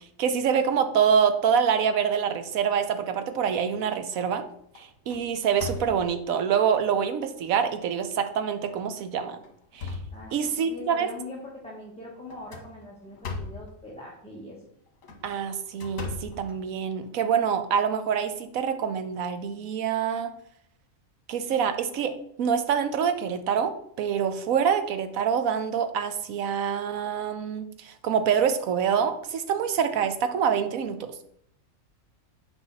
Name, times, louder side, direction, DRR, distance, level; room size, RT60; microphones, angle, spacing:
voice 1, 0.2-4.4 4.8-9.4 9.7-9.9 10.3-11.1 15.2-20.3 21.3-31.2, right 7 dB, 90° right, 9 dB, 1.2 m, -26 dB
sound 1, 3.2-3.7 4.2-4.4 4.7-6.3 7.0-7.1 7.6-7.7 8.6-8.8 9.3-10.7 12.3-13.7 14.9-17.1, left 3 dB, 75° left, 1.6 m, -39 dB
voice 2, 10.1-14.5, left 1 dB, 5° left, -5 dB, 1.4 m, -42 dB
8.2 x 5.2 x 4.1 m, 0.70 s
omnidirectional pair, 1.4 m